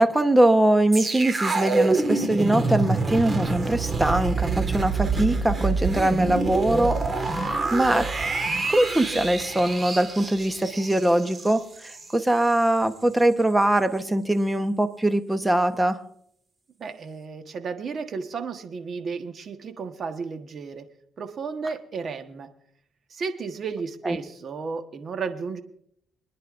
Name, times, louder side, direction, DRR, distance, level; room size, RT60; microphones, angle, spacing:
voice 1, 0.0-8.1 8.7-16.0 24.0-24.2, right 1 dB, 10° right, 10 dB, 1.0 m, -22 dB
sound 1, 0.9-12.1 12.4-12.6, right 3 dB, 30° right, 1.7 m, -26 dB
voice 2, 16.8-20.9 21.2-22.5 23.1-25.6, right 5 dB, 50° right, 7 dB, 1.3 m, -33 dB
24.5 x 10.5 x 2.6 m, 0.68 s
cardioid pair, 90°, 0 cm